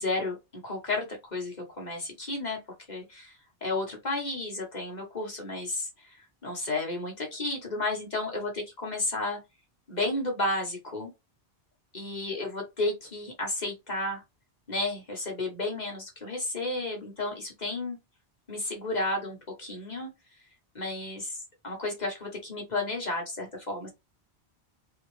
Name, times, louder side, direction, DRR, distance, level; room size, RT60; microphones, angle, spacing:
voice 1, 0.0-2.6 2.9-3.3 3.6-9.4 9.9-11.1 11.9-14.2 14.7-18.0 18.5-20.1 20.7-23.9, left 2 dB, 40° left, 1.4 m, -32 dB
4.2 x 3.1 x 3.2 m
omnidirectional pair, 1.1 m